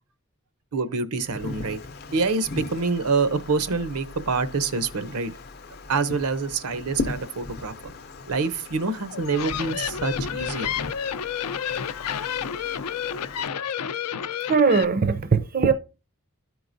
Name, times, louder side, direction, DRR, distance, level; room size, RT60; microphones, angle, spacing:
voice 1, 0.7-1.8 2.1-5.3 5.9-7.9 8.3-10.7, right 4 dB, 90° right, 0.7 m, -26 dB
Wind, 1.2-13.5, left 3 dB, 45° left, 0.5 m, -38 dB
sound 1, 9.1-14.8, left 8 dB, 90° left, 0.5 m, -30 dB
voice 2, 14.4-15.7, right 5 dB, 40° right, 0.4 m, -20 dB
13.0 x 4.7 x 2.6 m
head